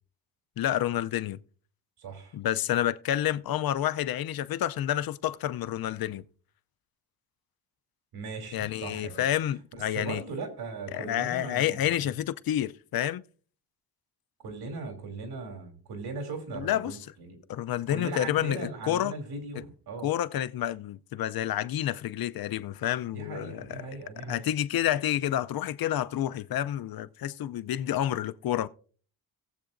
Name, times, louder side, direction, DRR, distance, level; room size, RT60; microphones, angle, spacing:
voice 1, 0.6-1.4 2.3-6.2 8.5-10.2 10.9-13.2 16.6-17.0 17.5-19.1 20.0-23.9 24.3-28.7, left 12 dB, 70° left, 0.6 m, -29 dB
voice 2, 2.0-2.4 8.1-9.2 9.7-12.1 14.4-17.4 17.9-20.1 23.1-24.4, right 3 dB, 85° right, 3.0 m, -39 dB
18.5 x 7.9 x 2.6 m
cardioid pair, 120°, 37 cm